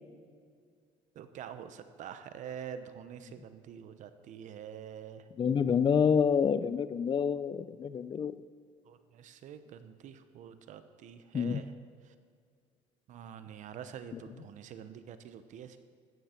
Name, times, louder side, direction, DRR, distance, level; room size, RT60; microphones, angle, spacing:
voice 1, 1.2-5.2 8.9-11.7 13.1-15.8, right 8 dB, 60° right, 11 dB, 0.9 m, -46 dB
voice 2, 5.4-8.3 11.3-11.6, left 7 dB, 35° left, 15 dB, 0.5 m, -27 dB
14.0 x 9.4 x 4.5 m, 2.1 s
cardioid pair, 105°, 14 cm